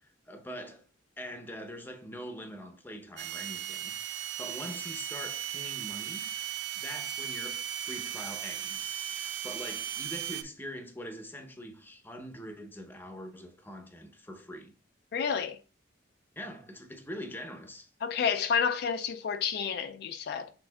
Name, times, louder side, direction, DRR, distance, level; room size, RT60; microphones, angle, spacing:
voice 1, 0.0-0.9 1.2-6.3 6.8-14.7 16.4-17.9, equal, 10° left, 0.7 m, -43 dB
sound 1, 3.2-10.4, right 10 dB, 65° right, 0.5 m, -37 dB
voice 2, 15.1-15.6 18.0-20.5, left 6 dB, 55° left, 0.3 m, -30 dB
6.3 x 3.6 x 2.2 m
head